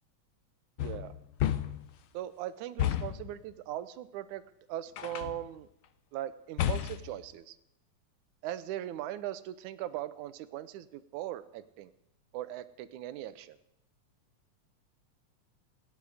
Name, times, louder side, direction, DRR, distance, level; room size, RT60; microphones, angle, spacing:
sound 1, 0.8-2.0 2.8-3.3 5.0-5.5 6.6-7.2, left 11 dB, 80° left, 1.2 m, -32 dB
voice 1, 0.8-1.1 2.1-4.4 4.7-5.7 6.1-7.6 8.4-11.9 12.3-13.6, right 12 dB, 85° right, 13 dB, 2.2 m, -39 dB
27.5 x 9.9 x 5.0 m, 0.79 s
omnidirectional pair, 3.4 m